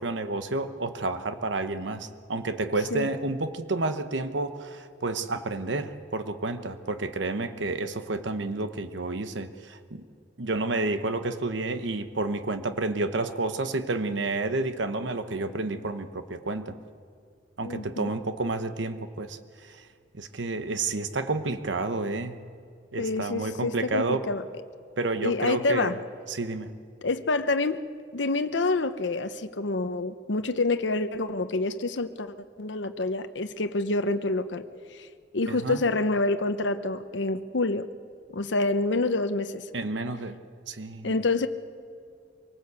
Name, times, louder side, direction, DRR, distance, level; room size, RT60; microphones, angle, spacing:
voice 1, 0.0-10.0 10.4-16.7 17.6-19.9 20.1-22.3 22.9-24.2 25.0-26.0 26.3-26.7 35.5-35.8 39.7-40.4 40.7-41.1, right 2 dB, 80° right, 9 dB, 1.0 m, -30 dB
voice 2, 17.6-18.1 23.0-24.4 25.2-26.0 27.0-27.8 28.1-34.6 34.9-35.1 35.3-37.9 38.3-39.7 41.0-41.5, left 3 dB, 75° left, 9 dB, 0.9 m, -27 dB
24.5 x 18.5 x 8.2 m, 2.3 s
head